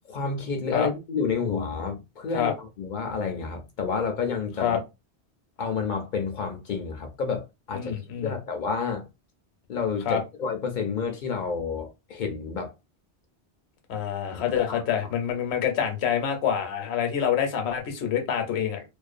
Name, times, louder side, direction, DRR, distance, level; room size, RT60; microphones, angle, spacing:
voice 1, 0.1-4.8 5.6-9.0 9.7-12.7 14.3-14.8, left 5 dB, 55° left, 0.6 m, -30 dB
voice 2, 7.7-8.3 10.1-10.2 13.9-18.8, left 8 dB, 75° left, 0.9 m, -26 dB
2.5 x 2.1 x 2.4 m
omnidirectional pair, 1.2 m